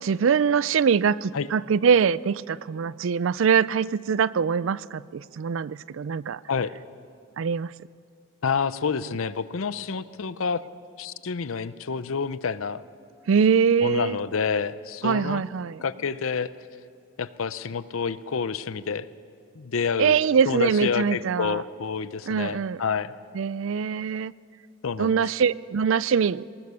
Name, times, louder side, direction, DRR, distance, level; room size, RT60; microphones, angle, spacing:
voice 1, 0.0-6.4 7.4-7.7 13.3-14.2 15.0-15.8 20.0-21.6 22.3-22.8 23.3-24.3 25.0-26.4, right 6 dB, 70° right, 20 dB, 0.4 m, -23 dB
voice 2, 8.4-10.6 11.0-12.8 13.8-15.4 15.8-16.5 17.2-19.1 19.6-20.2 20.5-23.1 24.8-25.2, left 5 dB, 85° left, 16 dB, 0.6 m, -28 dB
19.5 x 19.0 x 6.9 m, 2.3 s
head